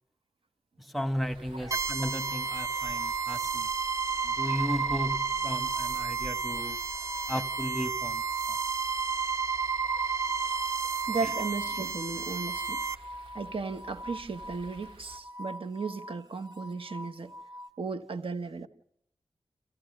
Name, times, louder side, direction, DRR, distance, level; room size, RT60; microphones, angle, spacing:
voice 1, 0.8-3.7 4.2-6.8 7.3-8.2 11.2-11.3, equal, ahead, 1.1 m, -35 dB
sound 1, 1.2-15.2, right 1 dB, 85° right, 2.6 m, -51 dB
sound 2, 1.7-12.9, right 5 dB, 30° right, 0.9 m, -31 dB
sound 3, 2.0-17.7, left 1 dB, 45° right, 1.3 m, -44 dB
voice 2, 11.1-12.8 13.3-17.3 17.8-18.7, right 4 dB, 65° right, 1.2 m, -35 dB
27.0 x 15.5 x 6.6 m
wide cardioid pair, 85°, 10 cm